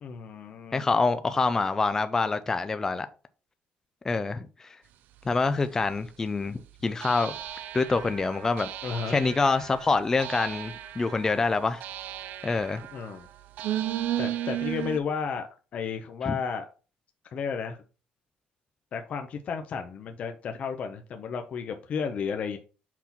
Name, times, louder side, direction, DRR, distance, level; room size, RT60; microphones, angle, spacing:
voice 1, 0.0-1.1 8.8-9.2 12.9-13.3 14.2-16.7 17.3-17.8 18.9-22.6, left 6 dB, 45° left, 0.7 m, -33 dB
voice 2, 0.7-3.1 4.0-4.8 5.3-7.3 7.7-8.7 9.1-11.8 12.4-12.8 16.3-16.4, left 3 dB, 15° left, 0.4 m, -26 dB
sound 1, 5.4-5.5 7.0-15.0, right 12 dB, 70° right, 0.6 m, -35 dB
6.0 x 4.3 x 5.8 m
cardioid pair, 155°, 3 cm